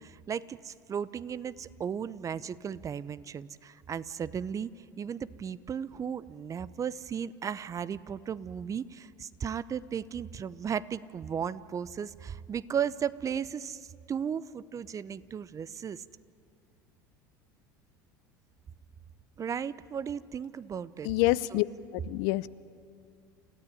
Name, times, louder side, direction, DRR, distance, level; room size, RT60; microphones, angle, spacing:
voice 1, 0.0-4.7 5.0-16.0 19.4-21.1 21.5-21.6, right 7 dB, 30° right, 18 dB, 0.8 m, -35 dB
voice 2, 21.0-21.7 21.9-22.5, left 19 dB, 65° left, 18 dB, 0.7 m, -27 dB
29.0 x 14.5 x 9.9 m, 2.3 s
hypercardioid pair, 80°, 10 cm